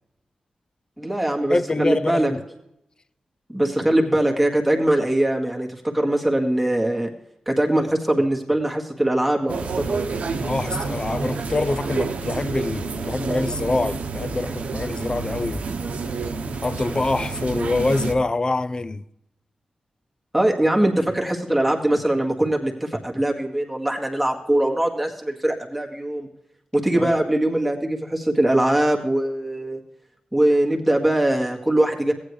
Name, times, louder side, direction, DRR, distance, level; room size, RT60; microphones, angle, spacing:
voice 1, 1.0-2.3 3.5-7.1 7.5-10.0 20.3-26.3 26.7-29.8 30.3-32.1, right 1 dB, ahead, 1.8 m, -21 dB
voice 2, 1.5-2.4 10.4-15.7 16.6-19.0 27.0-27.1, left 2 dB, 35° left, 0.5 m, -25 dB
sound 1, 9.5-18.1, right 4 dB, 75° right, 0.9 m, -29 dB
15.0 x 9.6 x 3.2 m
cardioid pair, 55°, 2 cm